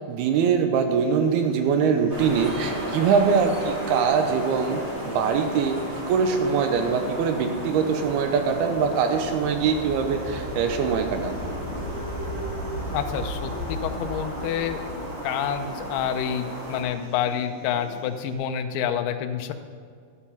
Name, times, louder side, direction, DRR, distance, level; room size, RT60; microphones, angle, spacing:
voice 1, 0.1-5.8 6.1-11.4, right 6 dB, 80° right, 6 dB, 2.7 m, -23 dB
sound 1, 0.9-18.3, right 2 dB, 45° right, 3.9 m, -40 dB
sound 2, 2.1-16.8, equal, 25° right, 4.1 m, -34 dB
voice 2, 12.9-14.8 15.2-19.5, left 9 dB, 80° left, 7 dB, 2.6 m, -28 dB
12.0 x 8.6 x 5.7 m, 2.2 s
omnidirectional pair, 4.6 m